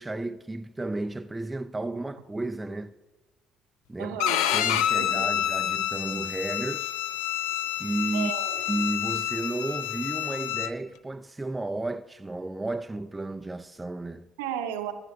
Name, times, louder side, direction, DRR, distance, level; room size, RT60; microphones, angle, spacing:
voice 1, 0.0-2.9 3.9-4.2 4.5-7.0 7.8-8.3 8.7-14.3, right 2 dB, 15° right, 0.3 m, -33 dB
voice 2, 4.0-4.4 4.9-5.3 8.1-8.6 14.4-14.9, right 10 dB, 70° right, 0.7 m, -34 dB
Bowed string instrument, 4.2-10.7, left 11 dB, 65° left, 0.4 m, -28 dB
16.5 x 11.0 x 2.7 m
figure-of-eight pair, 50°, 0 cm